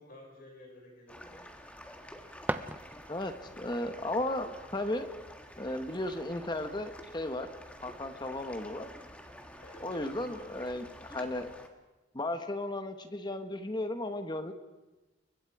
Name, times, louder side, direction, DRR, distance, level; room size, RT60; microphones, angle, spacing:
voice 1, 0.0-1.5 9.6-10.6, left 1 dB, 50° left, 0 dB, 5.8 m, -52 dB
sound 1, 1.1-11.7, equal, 5° left, 1.8 m, -49 dB
sound 2, 2.4-3.4, right 1 dB, 10° right, 0.7 m, -38 dB
voice 2, 3.1-5.1 5.6-7.5 7.8-8.9 9.8-11.5 12.1-14.5, left 1 dB, 25° left, 8 dB, 1.2 m, -35 dB
29.5 x 23.5 x 4.9 m, 1.1 s
head